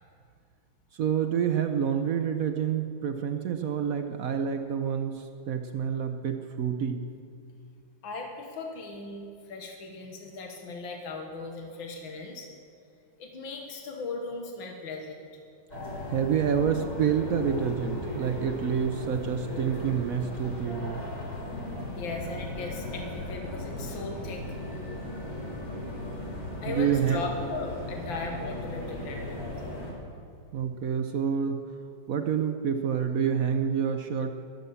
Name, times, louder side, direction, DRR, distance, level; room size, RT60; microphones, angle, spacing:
voice 1, 0.9-7.0 16.1-21.0 26.7-27.2 30.5-31.6 32.1-34.3, right 7 dB, 65° right, 6 dB, 0.9 m, -28 dB
voice 2, 8.0-12.5 13.2-15.3 22.0-24.4 26.6-29.8, left 3 dB, 75° left, 2 dB, 2.1 m, -38 dB
sound 1, 15.7-29.9, left 1 dB, 40° left, 3.5 m, -37 dB
20.5 x 7.8 x 7.0 m, 2.4 s
omnidirectional pair, 2.2 m